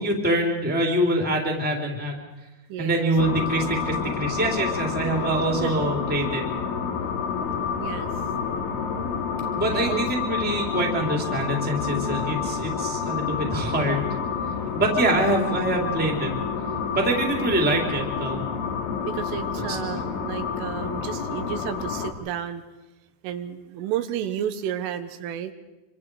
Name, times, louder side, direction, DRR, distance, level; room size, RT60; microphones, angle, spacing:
voice 1, 0.0-2.2 2.8-6.4 9.5-14.1 14.7-16.3 16.9-18.4 19.6-19.8, right 1 dB, 5° right, 1 dB, 2.3 m, -25 dB
voice 2, 2.7-3.3 5.5-5.7 7.8-8.1 9.7-10.4 19.0-22.6 23.2-25.5, right 9 dB, 85° right, 9 dB, 3.7 m, -32 dB
sound 1, 3.2-22.1, left 6 dB, 80° left, 4.6 m, -29 dB
26.0 x 26.0 x 4.9 m, 1.0 s
omnidirectional pair, 5.6 m